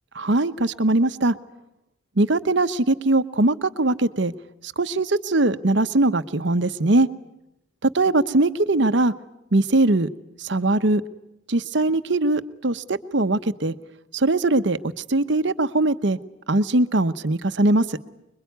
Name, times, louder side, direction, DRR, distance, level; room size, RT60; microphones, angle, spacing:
voice 1, 0.2-1.4 2.2-4.3 4.6-7.1 7.8-9.1 9.5-10.1 10.4-11.0 11.5-13.7 14.1-16.2 16.5-18.0, right 2 dB, 60° right, 12 dB, 0.9 m, -21 dB
25.5 x 22.5 x 9.4 m, 0.86 s
head